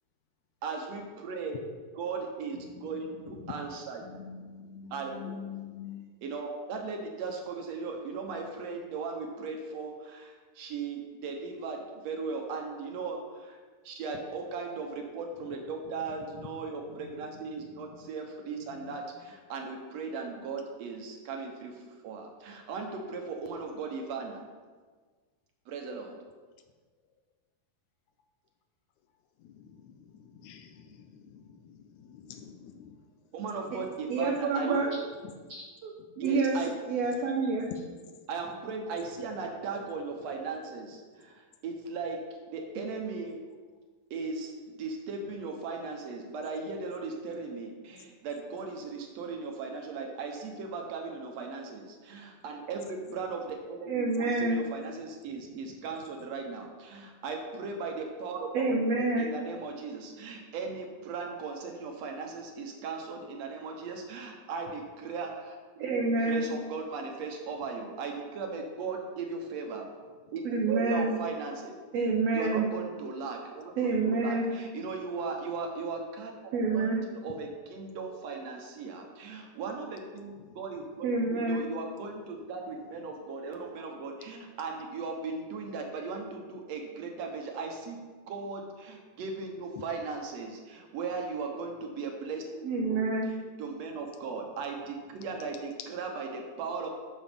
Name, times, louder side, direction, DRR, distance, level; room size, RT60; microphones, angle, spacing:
voice 1, 0.6-1.6 2.0-4.1 4.9-5.4 6.2-13.6 13.9-21.8 22.0-24.4 25.7-26.2 33.3-35.0 36.2-36.8 38.3-41.3 41.6-42.2 42.5-43.4 44.1-69.9 70.3-71.8 72.3-96.9, right 4 dB, 70° right, 2 dB, 1.7 m, -37 dB
voice 2, 4.1-6.0 17.6-17.9 30.4-30.7 31.3-31.4 32.1-32.9, left 8 dB, 85° left, 6 dB, 1.7 m, -44 dB
voice 3, 34.1-34.9 35.8-35.9 36.2-36.6 36.9-37.7 53.9-54.6 58.5-59.3 65.8-66.5 70.4-71.1 71.9-72.7 73.8-74.4 76.5-77.0 81.0-81.6 92.6-93.3, right 3 dB, 85° right, 0 dB, 1.4 m, -27 dB
13.0 x 6.3 x 3.5 m, 1.4 s
omnidirectional pair, 4.1 m